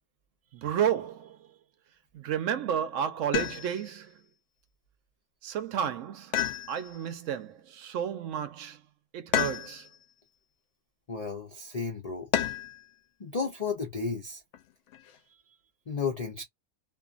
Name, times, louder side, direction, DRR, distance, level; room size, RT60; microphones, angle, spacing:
voice 1, 0.5-1.5 2.1-4.1 5.4-6.3 6.7-8.8 9.1-9.9, right 9 dB, 65° right, 1.0 m, -31 dB
sound 1, 3.3-4.0 6.3-7.1 9.3-10.0 12.3-12.8 14.5-15.2, left 10 dB, 65° left, 0.8 m, -31 dB
voice 2, 11.1-12.3 13.2-14.4 15.9-16.4, left 5 dB, 45° left, 0.5 m, -33 dB
2.6 x 2.5 x 2.4 m
omnidirectional pair, 1.5 m